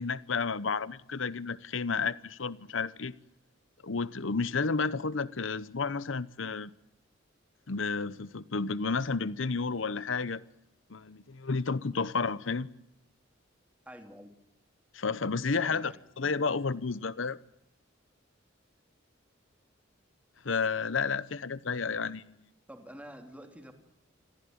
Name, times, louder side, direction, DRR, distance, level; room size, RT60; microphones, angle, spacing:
voice 1, 0.0-3.1 3.8-6.7 7.7-10.4 10.9-12.7 14.9-17.4 20.4-22.3, left 4 dB, 70° left, 0.9 m, -31 dB
voice 2, 13.8-14.4 15.6-16.0 22.7-23.7, equal, 5° right, 3.1 m, -48 dB
26.5 x 15.0 x 9.4 m
head